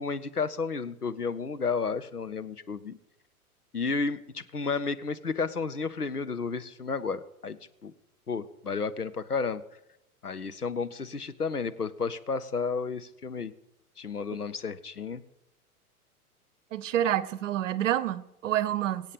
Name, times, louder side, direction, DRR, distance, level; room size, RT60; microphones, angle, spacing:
voice 1, 0.0-3.0 3.7-7.9 8.3-9.6 10.2-13.5 14.0-15.2, left 4 dB, 85° left, 12 dB, 1.0 m, -32 dB
voice 2, 16.7-19.1, right 11 dB, 55° right, 17 dB, 1.0 m, -28 dB
23.5 x 8.5 x 5.2 m, 0.86 s
figure-of-eight pair, 100°, 45 cm